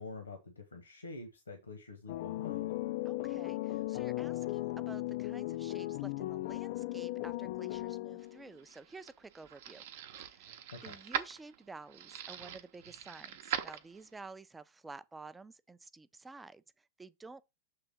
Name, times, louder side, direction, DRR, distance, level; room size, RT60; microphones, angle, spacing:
voice 1, 0.0-2.7 10.7-11.0, left 3 dB, 75° left, 1.1 m, -47 dB
sound 1, 2.1-8.5, left 17 dB, 50° left, 0.3 m, -37 dB
voice 2, 3.0-9.8 10.2-17.4, right 3 dB, 10° right, 0.4 m, -51 dB
sound 2, 8.3-14.3, right 9 dB, 55° right, 0.7 m, -42 dB
6.7 x 3.4 x 5.8 m
figure-of-eight pair, 90°, 0 cm